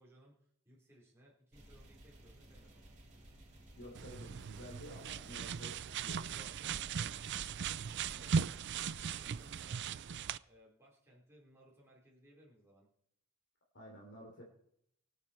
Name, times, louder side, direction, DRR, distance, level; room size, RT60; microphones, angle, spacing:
voice 1, 0.0-3.0 7.8-10.2 10.5-12.9, right 1 dB, 10° right, -5 dB, 3.9 m, -64 dB
sound 1, 1.5-9.7, right 1 dB, 35° right, 3.5 m, -58 dB
voice 2, 3.8-6.9 13.7-14.4, left 1 dB, 55° left, -2 dB, 3.4 m, -52 dB
sound 2, 4.0-10.4, right 6 dB, 50° right, 0.4 m, -38 dB
24.5 x 8.3 x 4.5 m, 0.72 s
head